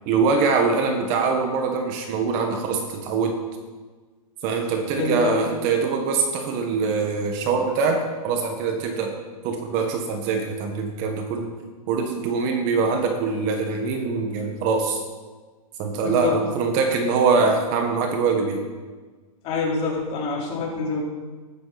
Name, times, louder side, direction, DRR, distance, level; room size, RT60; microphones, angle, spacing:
voice 1, 0.0-3.4 4.4-9.1 9.4-11.5 11.9-15.0 15.8-18.6, right 4 dB, 35° right, 4 dB, 1.7 m, -23 dB
voice 2, 4.9-5.4 15.9-16.4 19.4-21.0, left 4 dB, 30° left, -4 dB, 4.3 m, -26 dB
15.0 x 13.0 x 4.3 m, 1.4 s
hypercardioid pair, 145°, 20 cm